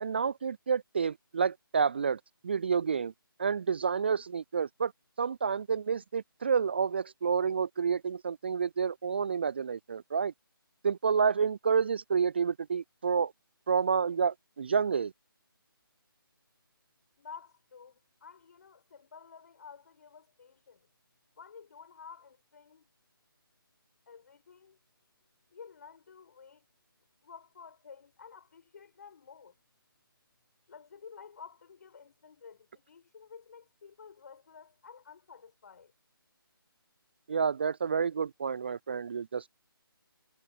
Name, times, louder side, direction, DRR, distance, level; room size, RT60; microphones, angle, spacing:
voice 1, 0.0-3.1 3.4-4.9 5.2-10.3 10.8-13.3 13.7-15.1 37.3-39.5, right 6 dB, 30° right, 0.3 m, -29 dB
voice 2, 17.2-20.9 21.4-22.9 24.1-24.8 25.5-26.7 27.2-29.5 30.7-35.9, left 6 dB, 45° left, 7.8 m, -52 dB
figure-of-eight pair, 150°, 12 cm